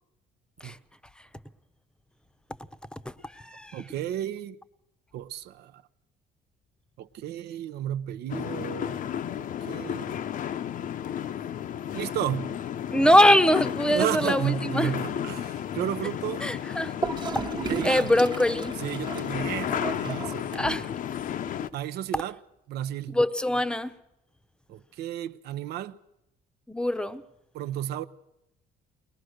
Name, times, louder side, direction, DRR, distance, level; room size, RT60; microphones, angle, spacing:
voice 1, 2.9-3.8 12.0-12.2 12.9-14.9 16.4-16.9 17.8-18.7 20.5-20.9 23.1-23.9 26.7-27.2, equal, 5° left, 0.8 m, -23 dB
voice 2, 3.7-4.6 5.1-5.8 7.0-9.0 9.4-10.2 11.9-12.5 13.9-16.4 17.7-18.1 18.8-20.8 21.7-22.4 22.7-23.2 24.7-26.0 27.5-28.0, right 11 dB, 75° right, 0.7 m, -33 dB
sound 1, 8.3-21.7, left 9 dB, 55° left, 0.7 m, -33 dB
Gurgling / Toilet flush, 17.0-21.0, right 5 dB, 25° right, 1.0 m, -35 dB
22.0 x 19.5 x 6.5 m
cardioid pair, 110°, 17 cm